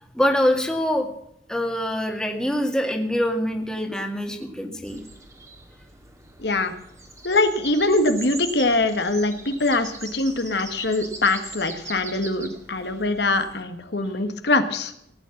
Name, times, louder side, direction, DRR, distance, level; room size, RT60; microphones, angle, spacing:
voice 1, 0.1-1.1 1.5-5.0, equal, 5° left, 3 dB, 2.1 m, -24 dB
sound 1, 4.8-13.6, right 3 dB, 15° right, 2.1 m, -41 dB
voice 2, 6.4-6.7 7.2-14.9, left 2 dB, 65° left, 8 dB, 1.6 m, -23 dB
18.0 x 9.4 x 7.2 m, 0.74 s
head